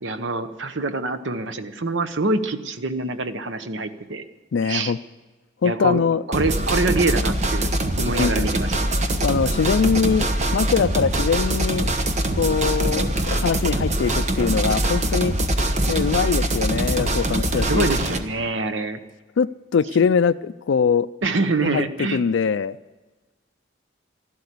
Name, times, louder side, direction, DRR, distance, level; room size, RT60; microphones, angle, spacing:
voice 1, 0.0-4.2 4.6-4.9 5.6-6.0 6.3-8.7 17.5-19.0 21.2-22.2, right 3 dB, 85° right, 10 dB, 1.1 m, -25 dB
voice 2, 4.5-5.0 5.6-6.2 8.1-8.5 9.2-11.9 12.4-15.3 15.9-17.9 19.4-21.1 21.6-21.9 22.1-22.8, left 6 dB, 80° left, 11 dB, 0.4 m, -22 dB
sound 1, 6.3-18.2, right 1 dB, 40° right, 1.1 m, -23 dB
13.5 x 12.0 x 8.4 m, 1.2 s
head